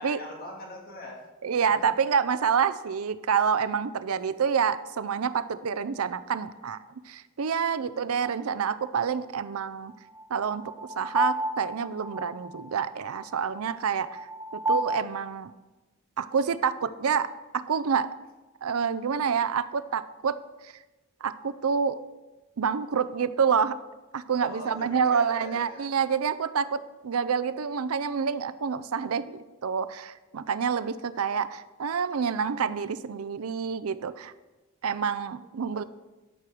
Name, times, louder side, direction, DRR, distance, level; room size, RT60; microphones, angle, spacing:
voice 1, 0.0-1.7 7.9-8.1 24.3-25.9 29.0-29.1 35.7-35.9, left 1 dB, 45° left, -1 dB, 2.4 m, -42 dB
voice 2, 1.4-6.8 7.1-9.9 10.3-10.6 11.0-14.3 14.5-15.5 16.2-18.1 18.6-20.4 20.6-20.7 21.2-22.0 22.6-23.8 24.1-34.3 34.8-35.8, right 6 dB, 90° right, 15 dB, 0.5 m, -28 dB
sound 1, 8.2-8.3 10.1-15.0, right 1 dB, 15° right, 0.5 m, -31 dB
13.0 x 6.1 x 4.9 m, 1.1 s
head